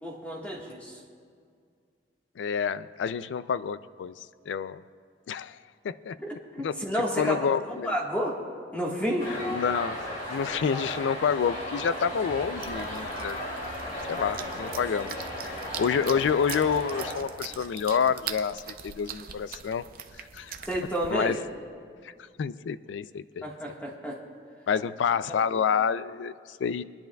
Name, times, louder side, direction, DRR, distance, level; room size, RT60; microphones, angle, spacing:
voice 1, 0.0-0.9 6.5-7.4 7.8-8.4 8.7-9.3 20.7-21.4 23.4-24.2 25.3-25.4, equal, 10° left, -2 dB, 1.5 m, -30 dB
voice 2, 2.4-4.8 5.3-5.6 5.8-6.2 6.6-6.8 7.2-7.9 9.3-10.0 10.3-13.4 14.0-19.8 20.2-20.5 21.1-21.4 22.0-22.1 22.4-23.5 24.7-26.8, left 6 dB, 90° left, 16 dB, 0.3 m, -28 dB
sound 1, 9.2-17.1, left 1 dB, 45° left, 2.6 m, -35 dB
sound 2, 12.6-21.1, right 8 dB, 55° right, 0.6 m, -42 dB
25.0 x 10.5 x 2.3 m, 2.2 s
head